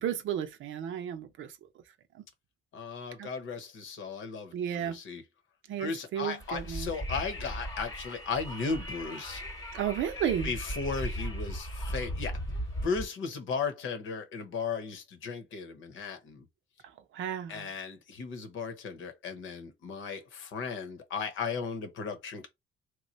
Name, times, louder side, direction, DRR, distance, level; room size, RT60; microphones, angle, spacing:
voice 1, 0.0-1.5 2.2-2.3 3.2-3.3 4.5-5.0 5.7-6.9 9.7-10.5 17.1-17.7, right 9 dB, 75° right, 0.6 m, -33 dB
voice 2, 2.7-5.2 5.8-9.4 10.4-12.4 12.8-16.4 17.5-22.5, left 5 dB, 80° left, 0.9 m, -36 dB
Wind, 6.4-13.1, equal, 15° left, 1.0 m, -37 dB
3.1 x 2.1 x 4.0 m
cardioid pair, 90°, 20 cm